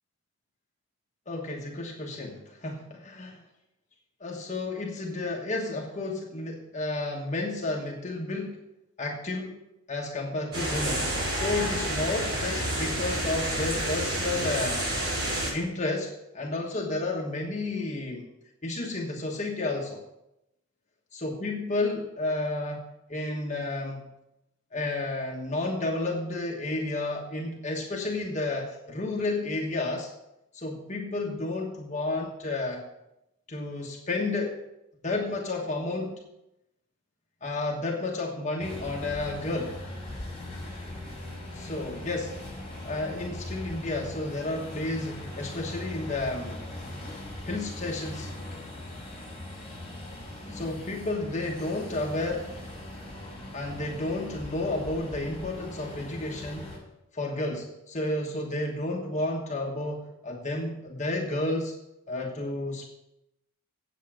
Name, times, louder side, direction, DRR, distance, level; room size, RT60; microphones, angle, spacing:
voice 1, 1.3-3.4 4.2-8.6 9.0-9.6 9.9-14.9 15.5-18.2 18.6-20.0 21.2-24.1 24.7-30.1 30.5-32.8 33.5-34.6 35.0-36.2 37.4-39.8 41.5-42.4 42.8-46.6 47.4-48.3 50.5-52.5 53.5-56.7 57.1-61.7 62.1-62.9, left 2 dB, 30° left, 0 dB, 1.3 m, -31 dB
sound 1, 10.5-15.5, right 1 dB, 70° right, 4.9 m, -29 dB
sound 2, 38.6-56.8, left 1 dB, 5° left, 4.9 m, -40 dB
8.3 x 8.1 x 7.6 m, 0.87 s
head